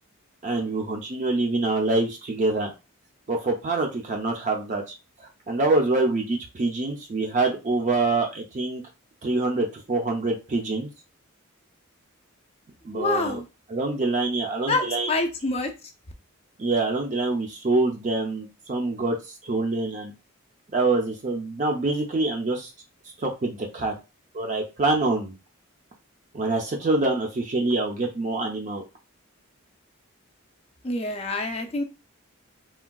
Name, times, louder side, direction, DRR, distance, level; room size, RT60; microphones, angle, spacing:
voice 1, 0.4-2.7 3.3-8.8 9.2-10.9 12.8-13.4 13.7-15.1 16.6-19.2 19.4-20.1 20.7-22.7 23.2-23.9 24.3-25.3 26.3-28.8, right 2 dB, 35° right, 2 dB, 0.4 m, -25 dB
voice 2, 12.9-13.4 14.7-15.7 30.8-31.8, left 2 dB, 30° left, 5 dB, 0.4 m, -26 dB
3.5 x 2.2 x 2.2 m, 0.29 s
head